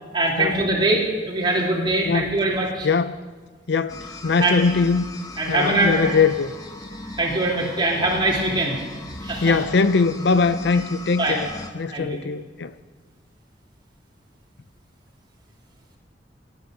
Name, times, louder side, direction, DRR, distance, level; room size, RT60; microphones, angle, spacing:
voice 1, 0.1-2.9 4.4-4.6 5.4-6.2 7.2-8.8 9.2-9.6 11.2-11.3 11.9-12.2, right 2 dB, 25° right, 3.3 m, -22 dB
voice 2, 2.8-3.2 3.7-5.0 5.5-6.5 9.4-11.5 11.7-12.7, left 4 dB, 65° left, 0.5 m, -21 dB
sound 1, 3.9-11.7, left 2 dB, 20° left, 1.2 m, -38 dB
18.5 x 9.6 x 6.5 m
head